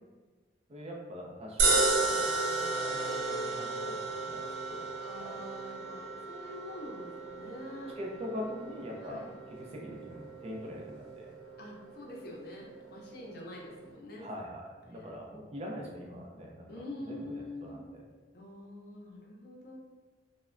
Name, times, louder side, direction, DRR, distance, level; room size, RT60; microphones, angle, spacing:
voice 1, 0.7-4.9 5.2-5.4 8.0-11.3 14.2-18.0, equal, 35° right, -1 dB, 0.4 m, -43 dB
sound 1, 1.6-13.9, right 3 dB, 80° right, 0.6 m, -34 dB
voice 2, 5.0-7.9 9.0-9.3 11.6-14.3 16.7-17.8 18.3-19.8, left 1 dB, 55° left, -2 dB, 0.6 m, -45 dB
3.2 x 2.1 x 2.4 m, 1.4 s
head